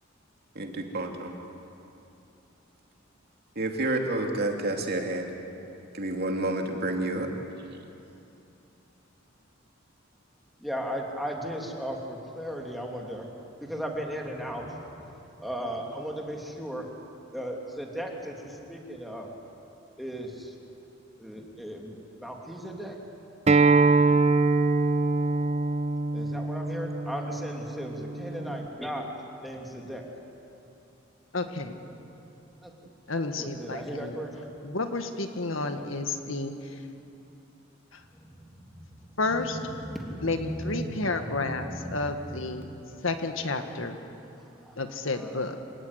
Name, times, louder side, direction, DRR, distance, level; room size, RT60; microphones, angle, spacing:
voice 1, 0.5-1.4 3.6-5.3 5.9-7.3, right 2 dB, 55° right, 2 dB, 2.8 m, -29 dB
voice 2, 10.6-13.3 13.6-16.9 17.3-19.3 20.0-20.5 21.2-23.0 26.1-29.1 29.4-30.1 32.6-32.7 33.4-34.5 35.7-35.8 38.1-42.6 44.6-44.8 45.1-45.4, equal, ahead, 0 dB, 3.0 m, -37 dB
Acoustic guitar, 23.5-28.7, right 3 dB, 35° right, 0.9 m, -24 dB
voice 3, 31.3-31.8 33.1-34.2 34.6-36.8 37.9-38.0 39.2-39.6 40.2-41.7 41.9-42.7 43.0-44.0 44.8-45.6, left 3 dB, 80° left, 6 dB, 1.9 m, -31 dB
27.0 x 17.0 x 9.9 m, 2.8 s
head